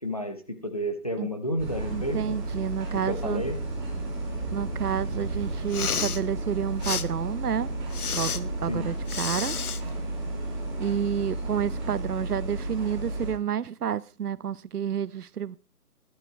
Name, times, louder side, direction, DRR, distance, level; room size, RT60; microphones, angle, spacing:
voice 1, 0.0-2.3 2.9-3.6 8.7-8.9, equal, 25° left, 0.8 m, -31 dB
sound 1, 1.6-13.3, right 2 dB, 15° right, 3.8 m, -32 dB
voice 2, 1.9-3.4 4.5-7.7 8.1-9.5 10.8-15.6, right 9 dB, 75° right, 0.7 m, -30 dB
Respiratory sounds, 5.6-6.2 6.8-7.0 7.9-8.4 9.1-9.8, left 7 dB, 70° left, 0.8 m, -30 dB
12.0 x 8.7 x 4.4 m
hypercardioid pair, 175°, 46 cm